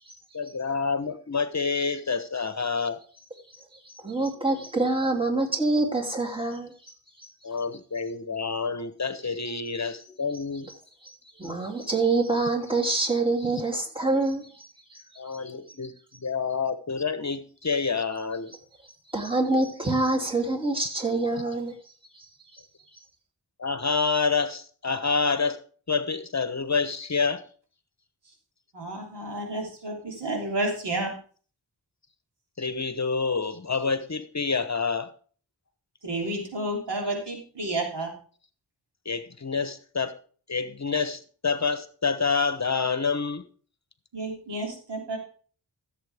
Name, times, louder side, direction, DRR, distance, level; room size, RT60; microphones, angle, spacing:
voice 1, 0.3-3.0 7.4-10.7 13.4-13.6 15.2-18.5 23.6-25.6 25.9-27.4 32.6-35.1 39.0-40.2 40.5-43.4, left 5 dB, 40° left, 11 dB, 1.0 m, -28 dB
voice 2, 4.0-6.7 11.4-14.4 19.1-21.7, right 2 dB, 15° right, 2 dB, 2.8 m, -25 dB
voice 3, 28.7-31.1 36.0-38.1 44.1-45.2, right 2 dB, 75° right, 0 dB, 3.4 m, -31 dB
14.5 x 7.6 x 3.5 m, 0.42 s
cardioid pair, 50°, 41 cm